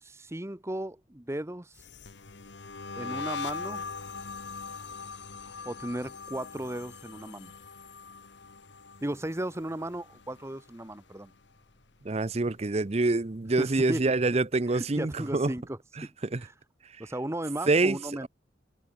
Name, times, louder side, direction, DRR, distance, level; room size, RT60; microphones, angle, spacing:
voice 1, 0.0-1.8 3.0-3.8 5.6-7.5 9.0-11.3 13.6-14.1 14.7-16.1 17.0-18.3, right 1 dB, 15° right, 1.0 m, -35 dB
sound 1, 1.8-10.9 11.2-11.6 12.0-13.5, left 4 dB, 70° left, 1.5 m, -42 dB
voice 2, 12.0-15.5 16.0-16.5 17.7-18.3, right 3 dB, 35° right, 0.7 m, -26 dB
head